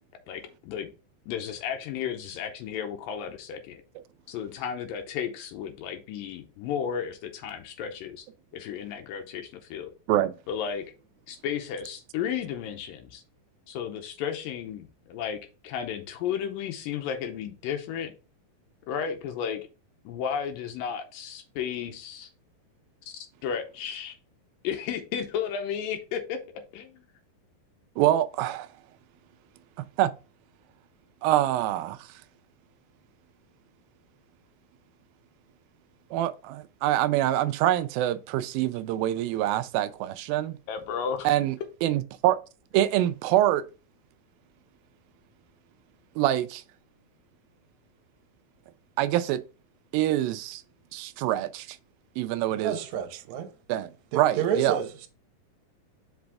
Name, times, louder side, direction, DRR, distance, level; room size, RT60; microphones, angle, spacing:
voice 1, 0.3-0.9 1.3-3.8 4.3-8.3 8.5-9.9 10.5-10.8 11.3-13.2 13.7-18.1 18.9-19.7 20.1-22.3 23.1-24.2 24.6-27.0 40.7-41.3, left 8 dB, 80° left, 2.4 m, -33 dB
voice 2, 28.0-28.7 29.8-30.1 31.2-32.1 36.1-40.6 41.2-41.6 41.8-42.4 42.7-43.7 46.2-46.6 49.0-49.4 49.9-50.6 50.9-51.8 52.2-52.8 53.7-54.8, right 13 dB, 85° right, 2.3 m, -25 dB
voice 3, 52.5-53.5 54.1-55.1, right 8 dB, 65° right, 2.1 m, -30 dB
6.0 x 5.2 x 3.4 m
omnidirectional pair, 4.1 m